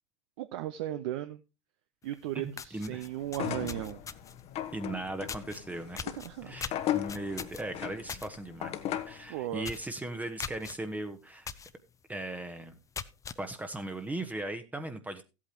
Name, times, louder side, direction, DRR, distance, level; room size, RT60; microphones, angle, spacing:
voice 1, 0.4-1.4 2.0-4.0 6.2-6.5 9.3-9.7, right 13 dB, 60° right, 11 dB, 0.7 m, -36 dB
sound 1, 2.1-2.2 2.5-4.4 5.3-5.6 6.0-8.3 8.6-8.9 9.2-9.3 9.6-9.9 10.4-10.7 11.5-11.7 12.2-12.3 12.7-13.4, left 6 dB, 20° left, 0.6 m, -40 dB
voice 2, 2.3-3.1 4.7-6.0 6.4-11.5 12.1-12.8 13.4-15.2, right 2 dB, 10° right, 8 dB, 1.0 m, -38 dB
sound 2, 3.3-9.3, left 11 dB, 40° left, 1.1 m, -37 dB
15.5 x 8.5 x 2.9 m, 0.28 s
hypercardioid pair, 85°, 16 cm